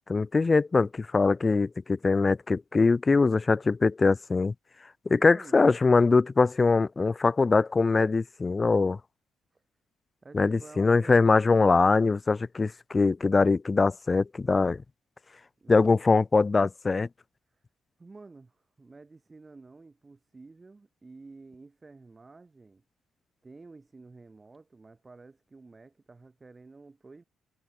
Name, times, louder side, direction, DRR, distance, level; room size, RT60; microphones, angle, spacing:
voice 1, 0.1-4.5 5.1-9.0 10.3-14.8 15.7-17.1, left 4 dB, 30° left, 0.5 m, -22 dB
voice 2, 5.1-5.6 9.5-9.6 10.2-11.3 15.6-16.0 17.5-17.6 18.0-22.8 23.4-27.2, right 3 dB, 25° right, 2.9 m, -50 dB
cardioid pair, 90°, 0 cm